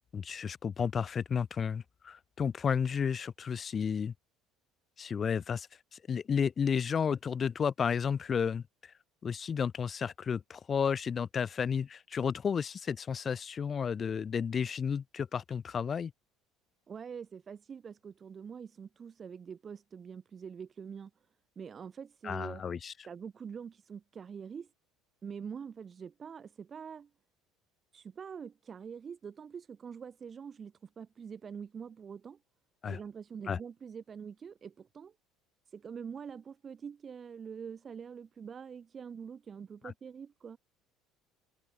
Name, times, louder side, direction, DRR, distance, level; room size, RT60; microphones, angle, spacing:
voice 1, 0.1-4.1 5.0-5.7 5.9-8.9 9.2-16.1 22.2-22.9 32.8-33.0 33.5-33.6 39.8-39.9, left 7 dB, 35° left, 0.5 m, -32 dB
voice 2, 16.9-21.1 21.6-22.6 23.1-24.7 25.2-27.1 27.9-32.4 32.8-35.1 35.7-40.6, right 7 dB, 35° right, 1.0 m, -45 dB
figure-of-eight pair, 60°, 0 cm